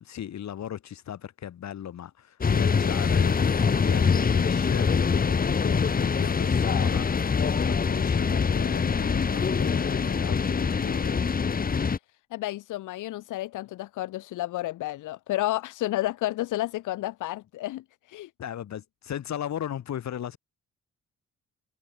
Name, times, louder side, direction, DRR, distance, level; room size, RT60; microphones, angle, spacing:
voice 1, 0.0-11.1 18.4-20.4, left 10 dB, 65° left, 4.8 m, -37 dB
sound 1, 2.4-12.0, left 5 dB, 30° left, 1.1 m, -24 dB
voice 2, 12.3-18.3, left 16 dB, 85° left, 1.5 m, -31 dB
cardioid pair, 90°, 30 cm